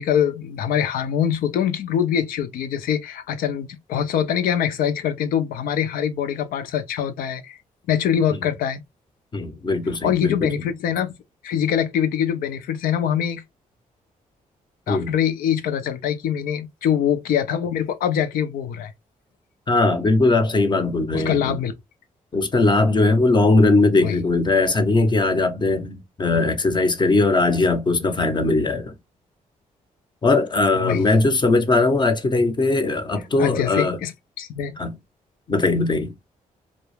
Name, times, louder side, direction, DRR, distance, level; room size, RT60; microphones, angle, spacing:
voice 1, 0.0-7.6 7.9-8.8 10.0-11.1 11.4-13.4 14.9-18.9 21.1-21.7 24.0-24.2 30.7-31.2 33.4-34.8, left 9 dB, 85° left, 0.4 m, -24 dB
voice 2, 9.3-10.5 14.9-15.1 19.7-21.6 22.3-28.9 30.2-34.0 34.8-34.9 35.5-36.1, left 2 dB, 30° left, 0.6 m, -19 dB
2.2 x 2.0 x 3.0 m
cardioid pair, 75°, 14 cm